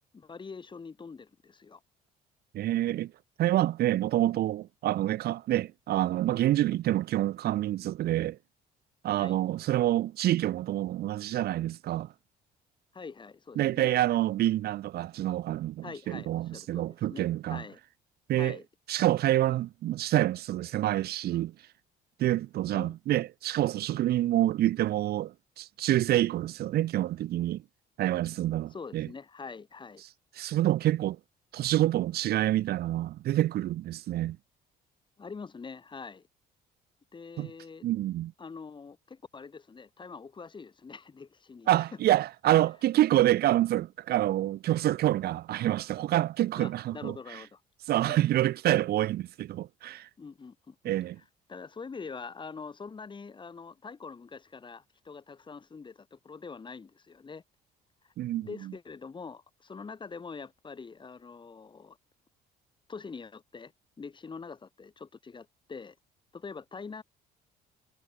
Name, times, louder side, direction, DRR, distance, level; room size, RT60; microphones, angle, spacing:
voice 1, 0.1-1.8 9.1-9.4 12.9-13.9 15.8-17.8 18.3-18.7 22.7-22.9 28.7-30.0 35.2-36.3 37.1-37.9 38.4-41.7 46.6-47.6 48.1-48.3 50.2-50.9 51.5-57.4 58.0-62.0 62.9-63.7 64.0-66.0 66.3-67.0, left 5 dB, 30° left, 7.1 m, -44 dB
voice 2, 2.5-3.1 3.4-8.4 9.0-12.1 13.5-17.6 18.3-18.6 18.9-21.5 22.2-27.6 28.0-29.1 30.3-31.2 31.5-34.4 37.4-37.5 37.8-38.3 41.7-47.4 47.9-50.1 50.8-51.2 58.2-58.5, right 14 dB, 65° right, 1.6 m, -27 dB
cardioid pair, 110°, 17 cm